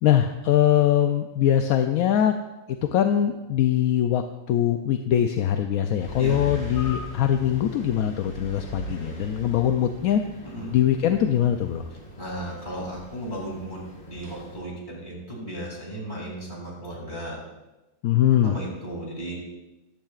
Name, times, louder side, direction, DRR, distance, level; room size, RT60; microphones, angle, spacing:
voice 1, 0.0-2.4 2.7-10.2 10.7-11.8 18.0-18.6, left 10 dB, 75° left, 6 dB, 1.0 m, -22 dB
sound 1, 6.0-14.6, left 1 dB, 50° left, 2.4 m, -40 dB
voice 2, 6.2-6.6 10.4-10.7 12.2-13.8 14.1-17.4 18.4-19.4, right 1 dB, 30° left, -4 dB, 3.5 m, -35 dB
14.0 x 12.0 x 2.4 m, 1.1 s
omnidirectional pair, 1.5 m